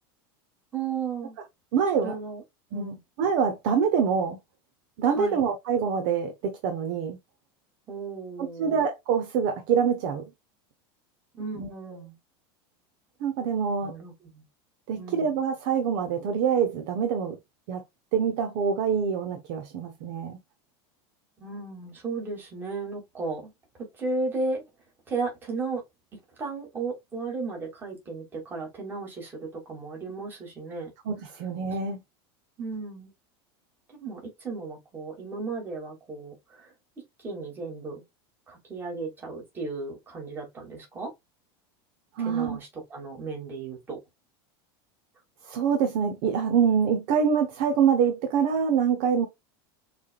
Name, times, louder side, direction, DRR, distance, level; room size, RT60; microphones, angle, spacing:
voice 1, 0.7-1.4 2.0-2.4 2.7-3.0 5.1-5.4 7.9-8.8 11.3-12.2 13.8-14.4 15.0-15.4 21.4-23.5 23.8-24.6 25.1-25.8 26.4-30.9 32.6-33.1 33.9-36.7 37.2-38.0 38.5-41.1 42.2-44.0, right 3 dB, 15° right, 2.3 m, -35 dB
voice 2, 1.7-2.1 2.7-4.4 5.0-7.2 8.4-10.3 11.5-11.7 13.2-13.9 14.9-17.4 17.7-17.8 18.1-20.4 31.1-32.0 42.2-42.6 45.4-49.3, right 7 dB, 50° right, 1.0 m, -25 dB
6.4 x 3.5 x 2.4 m
supercardioid pair, 170°, 13 cm